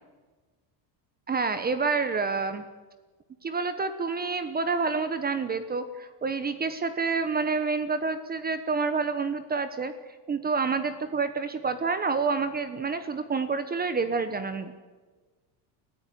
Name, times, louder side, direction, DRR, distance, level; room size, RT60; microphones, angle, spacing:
voice 1, 1.3-2.6 3.4-9.9 10.3-14.8, right 4 dB, 20° right, 11 dB, 1.1 m, -28 dB
29.5 x 14.5 x 9.3 m, 1.4 s
cardioid pair, 150°, 49 cm